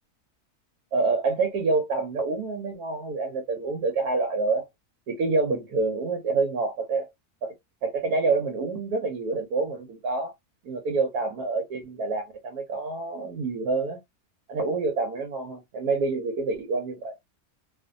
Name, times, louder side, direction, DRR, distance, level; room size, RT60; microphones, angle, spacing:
voice 1, 0.9-4.6 5.1-7.1 7.4-7.5 7.8-10.3 10.6-14.0 14.5-17.1, right 3 dB, 80° right, 1.2 m, -27 dB
2.5 x 2.4 x 2.5 m
omnidirectional pair, 1.6 m